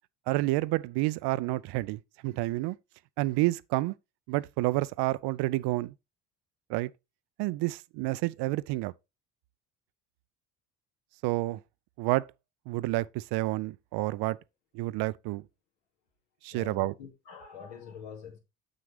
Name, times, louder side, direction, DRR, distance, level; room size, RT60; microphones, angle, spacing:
voice 1, 0.3-2.8 3.2-3.9 4.3-5.9 6.7-6.9 7.4-8.9 11.2-11.6 12.0-12.3 12.7-14.4 14.7-15.4 16.4-16.9, right 19 dB, 65° right, 0.5 m, -29 dB
voice 2, 16.5-18.4, left 6 dB, 70° left, 2.5 m, -45 dB
6.7 x 6.2 x 3.3 m
hypercardioid pair, 65°, 44 cm